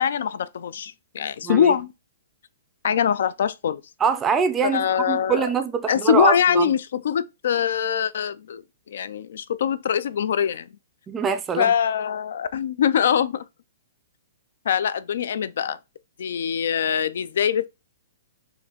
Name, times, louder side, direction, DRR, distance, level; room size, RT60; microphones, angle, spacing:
voice 1, 0.0-1.9 2.8-3.8 4.6-5.5 5.9-8.6 8.9-10.7 11.6-13.5 14.7-15.8 16.2-17.7, left 8 dB, 65° left, 0.4 m, -23 dB
voice 2, 1.4-1.8 4.0-6.7 11.1-11.7, right 6 dB, 10° right, 0.4 m, -24 dB
4.6 x 2.7 x 3.4 m
hypercardioid pair, 165°, 0 cm